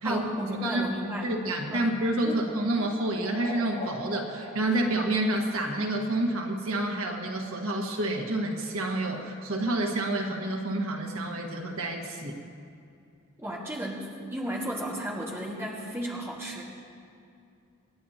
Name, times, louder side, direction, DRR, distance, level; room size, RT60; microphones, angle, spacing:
voice 1, 0.0-1.3 1.7-1.9 2.2-2.4 13.4-16.6, right 1 dB, 10° right, -4 dB, 1.7 m, -34 dB
voice 2, 1.2-12.4, right 1 dB, 85° right, 1 dB, 1.5 m, -29 dB
sound 1, 1.4-6.0, left 2 dB, 75° left, 2.1 m, -43 dB
27.0 x 10.0 x 2.9 m, 2.4 s
head